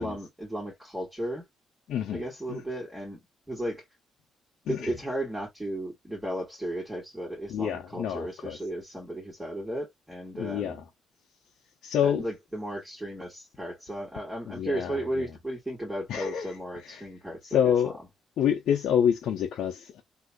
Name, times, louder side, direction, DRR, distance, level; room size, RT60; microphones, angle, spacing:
voice 1, 0.0-1.5 2.1-3.2 3.5-3.8 4.7-10.8 12.0-17.7, right 1 dB, 10° right, 2.3 m, -35 dB
voice 2, 1.9-2.2 2.5-2.6 4.6-4.9 7.5-8.6 10.3-10.8 11.8-12.2 14.5-15.3 16.1-16.6 16.8-17.1 17.4-17.9 18.4-20.0, left 8 dB, 75° left, 0.8 m, -27 dB
3.7 x 2.8 x 2.3 m
cardioid pair, 90°, 0 cm